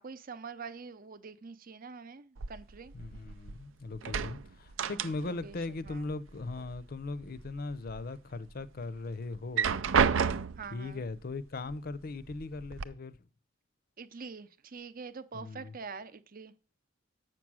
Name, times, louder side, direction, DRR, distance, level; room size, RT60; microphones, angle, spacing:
voice 1, 0.0-2.9 5.2-6.1 10.6-11.1 14.0-16.5, right 5 dB, 45° right, 0.7 m, -45 dB
sound 1, 2.4-3.6 3.9-5.5 5.8-6.8 7.2-8.0 8.5-8.6 9.4-10.8 11.7-11.8 12.2-12.8, right 6 dB, 85° right, 0.5 m, -31 dB
voice 2, 2.9-9.8 10.7-13.3 15.3-15.7, left 3 dB, 50° left, 0.6 m, -39 dB
7.8 x 6.1 x 6.2 m
head